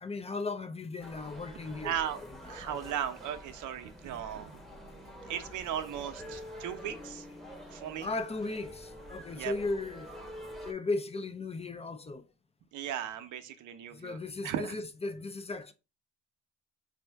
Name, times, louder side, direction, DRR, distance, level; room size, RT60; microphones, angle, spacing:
voice 1, 0.0-1.9 2.5-3.0 8.0-10.1 10.6-12.3 13.9-15.7, left 3 dB, 20° left, 0.4 m, -36 dB
sound 1, 1.0-10.7, equal, ahead, 0.9 m, -47 dB
voice 2, 1.8-4.6 5.3-7.3 7.7-8.1 9.3-9.5 12.7-14.2 14.4-14.8, right 10 dB, 80° right, 0.6 m, -37 dB
4.3 x 2.6 x 3.3 m
cardioid pair, 90°, 30 cm